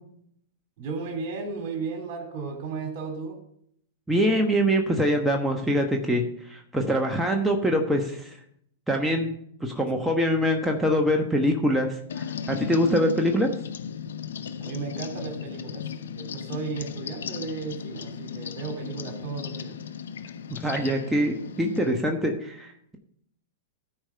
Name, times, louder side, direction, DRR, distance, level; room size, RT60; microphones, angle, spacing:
voice 1, 0.8-3.4 14.6-15.9 16.1-19.8, right 4 dB, 50° right, 3 dB, 3.3 m, -34 dB
voice 2, 4.1-8.4 8.9-9.3 9.6-13.5 20.5-23.0, equal, 5° right, 1 dB, 1.2 m, -24 dB
sound 1, 12.1-21.9, left 7 dB, 80° left, 0.7 m, -36 dB
13.5 x 4.9 x 5.7 m, 0.68 s
hypercardioid pair, 115°, 0 cm